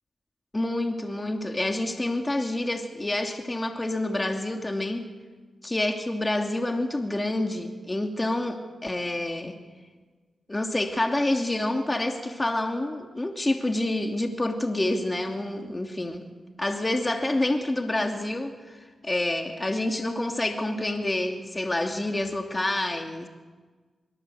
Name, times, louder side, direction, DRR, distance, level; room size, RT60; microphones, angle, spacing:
voice 1, 0.5-5.0 5.6-9.6 10.5-16.3 16.6-23.3, left 1 dB, 25° left, 3 dB, 2.8 m, -28 dB
24.5 x 24.0 x 8.0 m, 1.4 s
cardioid pair, 45°, 0 cm